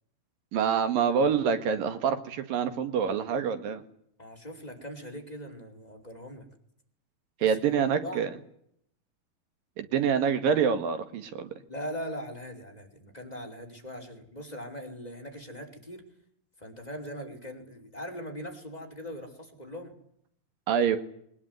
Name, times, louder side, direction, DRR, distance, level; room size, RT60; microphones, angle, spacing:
voice 1, 0.5-3.8 7.4-8.3 9.8-11.5 20.7-21.0, right 7 dB, 80° right, 9 dB, 3.7 m, -26 dB
voice 2, 4.2-6.5 7.4-8.3 11.7-16.0 16.6-19.9, equal, 10° left, 5 dB, 5.1 m, -40 dB
24.0 x 20.0 x 9.7 m, 0.68 s
omnidirectional pair, 3.9 m